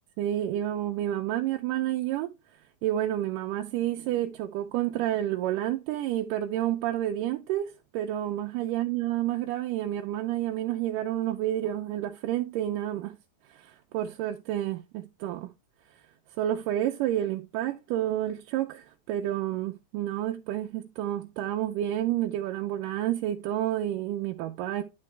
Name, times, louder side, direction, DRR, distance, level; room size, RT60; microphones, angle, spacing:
voice 1, 0.2-2.3 2.8-13.2 13.6-15.5 16.4-24.8, right 12 dB, 80° right, 2.2 m, -30 dB
11.0 x 3.8 x 3.2 m
omnidirectional pair, 3.9 m